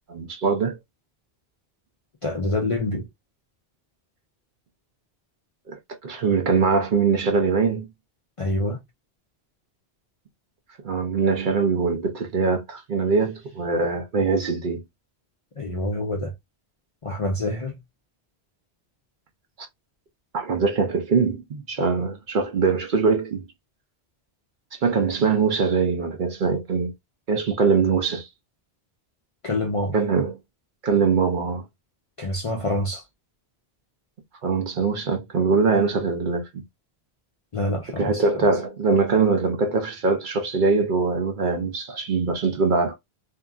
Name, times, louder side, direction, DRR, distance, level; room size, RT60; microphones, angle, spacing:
voice 1, 0.1-0.8 5.7-7.9 10.8-14.8 20.3-23.4 24.8-26.9 27.3-28.3 29.9-30.4 30.8-31.6 34.4-36.6 38.0-43.0, right 4 dB, 55° right, 0.7 m, -22 dB
voice 2, 2.2-3.1 8.4-8.8 15.6-16.3 17.0-17.8 29.4-30.0 32.2-33.0 37.5-38.2, left 1 dB, 45° left, 0.4 m, -26 dB
2.7 x 2.5 x 2.3 m
omnidirectional pair, 1.1 m